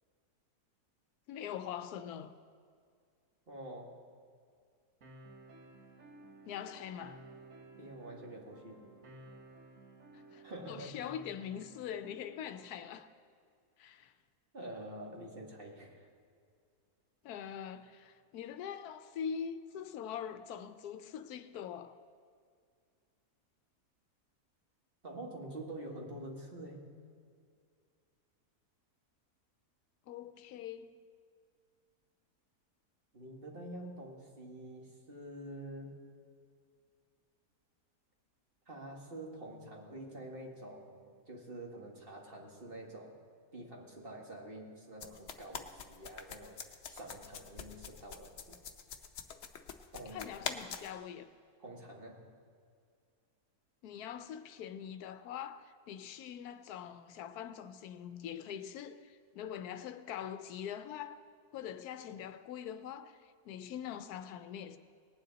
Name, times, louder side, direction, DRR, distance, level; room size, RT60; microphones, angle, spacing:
voice 1, 1.3-2.3 6.4-7.2 10.3-13.1 13.8-14.1 17.2-22.0 30.1-31.0 50.1-51.3 53.8-61.2 61.5-64.8, left 8 dB, 80° left, 1.1 m, -43 dB
voice 2, 3.5-4.0 7.8-8.8 10.4-10.9 14.5-16.1 25.0-26.9 33.1-36.0 38.7-43.2 43.5-46.6 46.9-48.6 49.9-50.2 51.6-52.2, right 1 dB, 35° right, 1.6 m, -47 dB
sound 1, 5.0-13.0, right 2 dB, 60° right, 1.6 m, -56 dB
sound 2, 45.0-50.9, left 7 dB, 55° left, 0.9 m, -44 dB
19.0 x 9.3 x 3.9 m
omnidirectional pair, 1.7 m